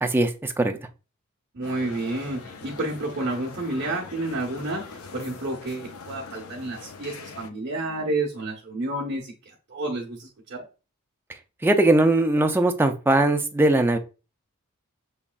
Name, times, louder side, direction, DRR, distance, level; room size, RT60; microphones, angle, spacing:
voice 1, 0.0-0.8 11.3-14.0, right 2 dB, 10° right, 5 dB, 0.4 m, -20 dB
voice 2, 1.5-9.3 9.7-10.6, right 2 dB, 50° right, -3 dB, 1.0 m, -30 dB
sound 1, 1.6-7.5, left 4 dB, 70° left, 0.6 m, -42 dB
6.8 x 3.1 x 2.4 m, 0.32 s
head